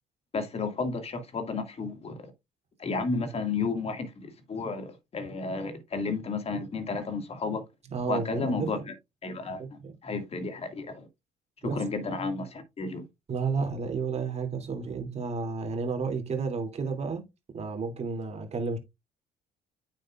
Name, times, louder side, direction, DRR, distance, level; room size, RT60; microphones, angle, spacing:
voice 1, 0.3-2.3 2.8-7.6 8.1-8.9 9.2-11.1 11.6-13.1, left 4 dB, 35° left, 2.1 m, -32 dB
voice 2, 7.9-8.7 9.6-9.9 11.6-11.8 13.3-17.2 17.5-18.8, right 4 dB, 40° right, 2.8 m, -31 dB
9.1 x 6.8 x 2.5 m
cardioid pair, 110°, 17 cm